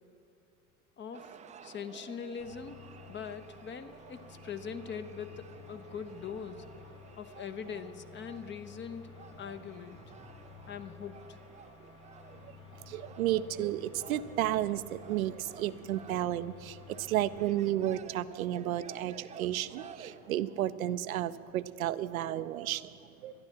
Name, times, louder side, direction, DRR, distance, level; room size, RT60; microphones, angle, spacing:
voice 1, 1.0-2.8 3.1-6.6 7.2-9.1 9.4-10.0 10.7-11.4, left 6 dB, 25° left, 10 dB, 0.8 m, -42 dB
sound 1, 1.1-20.7, right 7 dB, 15° right, 0.5 m, -53 dB
sound 2, 2.4-18.0, left 6 dB, 55° left, 3.4 m, -53 dB
voice 2, 12.4-22.9 23.2-23.3, right 13 dB, 75° right, 14 dB, 0.6 m, -32 dB
12.5 x 10.5 x 7.3 m, 2.6 s
figure-of-eight pair, 75°, 42 cm